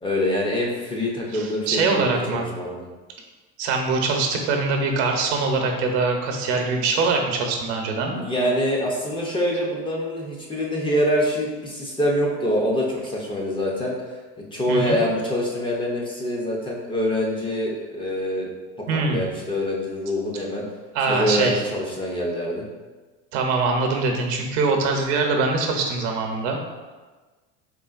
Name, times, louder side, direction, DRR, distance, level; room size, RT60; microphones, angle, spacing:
voice 1, 0.0-2.9 8.1-13.9 14.5-18.5 19.1-20.6 21.1-22.7, equal, 15° left, -2 dB, 0.5 m, -25 dB
voice 2, 1.3-2.4 3.6-8.2 14.7-15.0 18.9-19.3 20.9-21.6 23.3-26.6, right 3 dB, 75° right, 3 dB, 0.7 m, -23 dB
3.8 x 3.6 x 2.4 m, 1.3 s
supercardioid pair, 135°, 33 cm